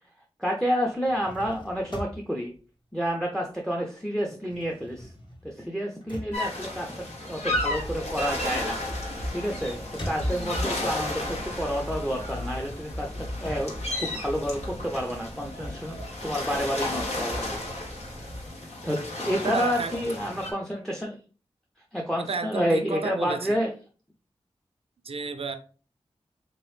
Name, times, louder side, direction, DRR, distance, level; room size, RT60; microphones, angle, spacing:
voice 1, 0.4-2.5 2.9-5.1 5.4-8.8 9.3-9.8 10.0-17.6 18.8-21.2 21.9-23.7, equal, 5° left, 0.5 m, -29 dB
sound 1, 0.9-3.7 4.0-10.8 11.3-14.8, equal, 45° left, 1.1 m, -44 dB
sound 2, 6.3-20.5, left 1 dB, 80° left, 1.1 m, -34 dB
sound 3, 7.4-18.5, left 1 dB, 25° left, 1.2 m, -38 dB
voice 2, 19.4-20.0 22.3-23.6 25.0-25.5, right 4 dB, 60° right, 0.5 m, -31 dB
3.4 x 3.0 x 3.1 m
wide cardioid pair, 65°, 11 cm